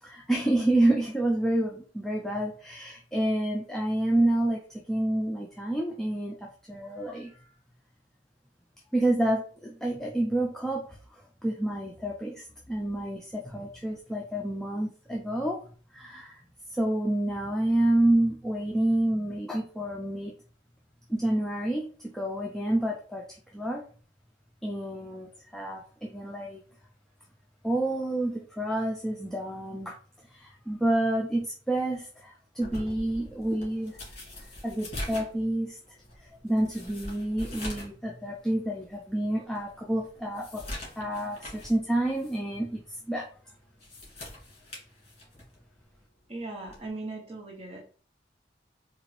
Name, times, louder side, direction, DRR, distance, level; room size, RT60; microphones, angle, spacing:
voice 1, 0.0-7.4 8.9-15.6 15.9-20.3 21.1-21.9 22.1-23.2 23.5-23.8 24.6-26.6 27.6-30.0 30.3-34.0 34.6-35.8 36.2-40.6 41.0-43.3, right 1 dB, ahead, -1 dB, 0.4 m, -29 dB
sound 1, 32.6-38.0 38.3-38.4 39.0-39.1 39.5-41.8 42.1-42.4 43.6-45.6 46.7-46.9, left 1 dB, 35° left, 1.8 m, -42 dB
voice 2, 46.3-47.8, right 2 dB, 30° right, 0 dB, 0.7 m, -38 dB
3.9 x 2.5 x 3.1 m, 0.41 s
head